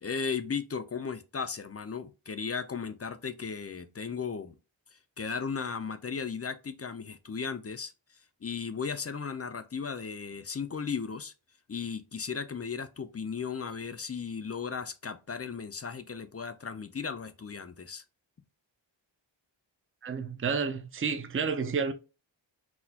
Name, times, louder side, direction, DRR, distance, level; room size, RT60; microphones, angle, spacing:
voice 1, 0.0-4.6 4.9-7.9 8.4-11.3 11.7-18.0, left 6 dB, 35° left, 0.4 m, -36 dB
voice 2, 20.0-21.9, right 5 dB, 30° right, 0.4 m, -30 dB
4.0 x 2.3 x 2.7 m
wide cardioid pair, 65°, 46 cm